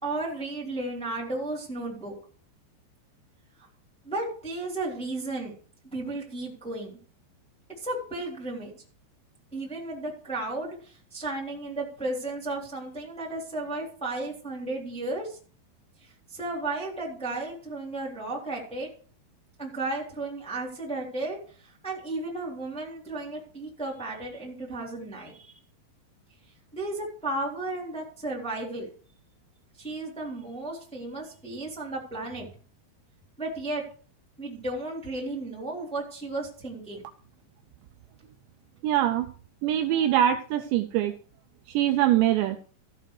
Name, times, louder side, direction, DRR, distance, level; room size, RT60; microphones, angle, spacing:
voice 1, 0.0-2.1 4.0-5.5 5.9-6.9 7.8-8.7 9.5-15.4 16.3-18.9 19.6-21.4 21.6-25.6 26.7-28.9 29.8-32.5 33.4-33.8 34.4-37.0, right 2 dB, ahead, -3 dB, 2.2 m, -34 dB
voice 2, 38.8-39.3 39.6-41.1 41.7-42.6, right 12 dB, 80° right, 6 dB, 2.7 m, -23 dB
14.5 x 6.6 x 4.8 m, 0.41 s
omnidirectional pair, 5.6 m